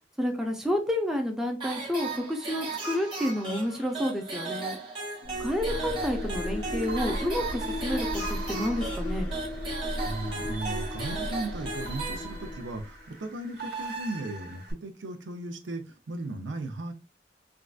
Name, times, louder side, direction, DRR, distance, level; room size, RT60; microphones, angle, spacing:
voice 1, 0.2-4.8 5.4-9.3, left 1 dB, 5° right, 2 dB, 0.5 m, -30 dB
sound 1, 1.6-12.7, right 3 dB, 30° right, 1.0 m, -37 dB
sound 2, 5.2-13.0, left 1 dB, 80° left, 0.9 m, -35 dB
sound 3, 5.7-14.7, right 3 dB, 55° right, 1.1 m, -43 dB
voice 2, 10.0-16.9, right 2 dB, 90° right, 7 dB, 0.6 m, -36 dB
3.6 x 2.4 x 2.4 m, 0.29 s
head